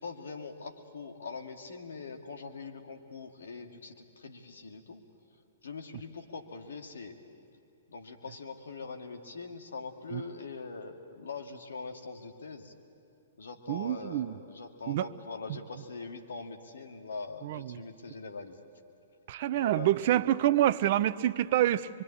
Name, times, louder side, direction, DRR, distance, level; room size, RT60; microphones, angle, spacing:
voice 1, 0.0-5.0 5.6-7.2 7.9-12.7 13.4-18.6 19.5-20.3, left 4 dB, 70° left, 5 dB, 2.1 m, -43 dB
voice 2, 13.7-14.4 14.9-15.1 17.4-17.8 19.3-21.9, right 13 dB, 50° right, 15 dB, 0.7 m, -27 dB
24.0 x 24.0 x 8.7 m, 2.6 s
figure-of-eight pair, 115°, 0 cm